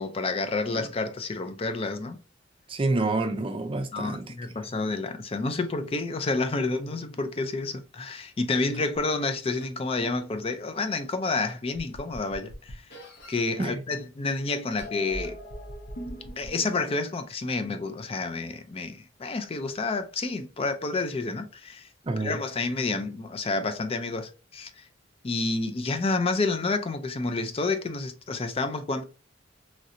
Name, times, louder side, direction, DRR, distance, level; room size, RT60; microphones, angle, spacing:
voice 1, 0.0-2.2 3.9-12.8 13.3-15.4 16.4-21.9 22.2-24.8 25.2-29.0, left 3 dB, 30° left, 0.4 m, -29 dB
voice 2, 2.7-4.3 13.6-13.8 22.0-22.4, right 2 dB, 30° right, 0.4 m, -28 dB
sound 1, 8.9-9.0 9.6-9.7 11.0-11.1 11.5-13.5 14.3-16.9, equal, 60° left, 0.8 m, -41 dB
3.1 x 2.6 x 2.7 m
head